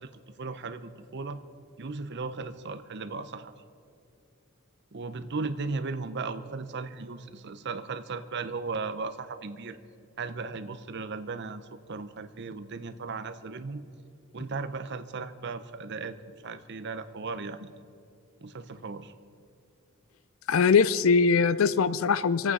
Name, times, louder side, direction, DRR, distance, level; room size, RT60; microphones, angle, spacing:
voice 1, 0.0-1.4 1.8-3.5 4.9-9.8 10.2-13.8 14.3-16.2 16.4-17.8 18.4-19.1, right 4 dB, 50° right, 10 dB, 0.7 m, -36 dB
voice 2, 20.5-22.5, left 5 dB, 65° left, 16 dB, 0.4 m, -22 dB
26.0 x 8.8 x 4.8 m, 2.3 s
head